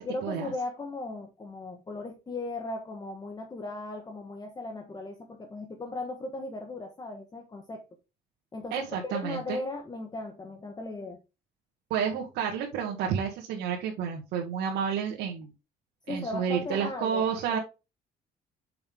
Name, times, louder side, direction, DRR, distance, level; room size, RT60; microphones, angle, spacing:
voice 1, 0.0-7.8 8.5-11.2 16.1-17.6, left 2 dB, 25° left, 1.2 m, -37 dB
voice 2, 8.7-9.6 11.9-15.5 16.1-17.6, right 7 dB, 85° right, 1.7 m, -30 dB
6.9 x 5.4 x 3.5 m
cardioid pair, 110°, 17 cm